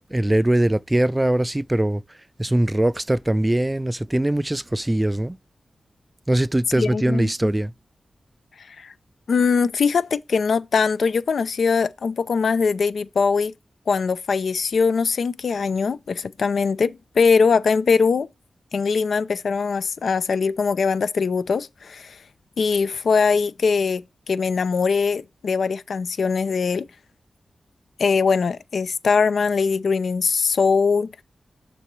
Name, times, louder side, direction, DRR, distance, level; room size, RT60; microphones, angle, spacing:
voice 1, 0.0-2.0 2.4-5.4 6.3-7.7, right 1 dB, 20° right, 0.3 m, -21 dB
voice 2, 6.8-7.5 8.7-8.9 9.3-13.5 13.9-18.3 18.7-22.2 22.6-26.9 28.0-31.2, left 5 dB, 80° left, 0.5 m, -21 dB
6.9 x 5.5 x 4.6 m
cardioid pair, 45°, 0 cm